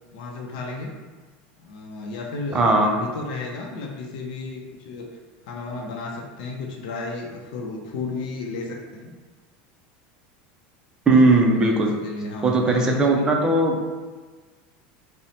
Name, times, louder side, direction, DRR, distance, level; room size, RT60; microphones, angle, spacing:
voice 1, 0.1-0.9 1.6-5.1 5.5-9.1 11.5-13.4, left 3 dB, 70° left, 0 dB, 0.6 m, -33 dB
voice 2, 2.5-3.0 11.1-11.9 12.4-13.8, right 2 dB, 15° right, 1 dB, 0.4 m, -18 dB
5.3 x 2.0 x 2.8 m, 1.4 s
supercardioid pair, 160°, 5 cm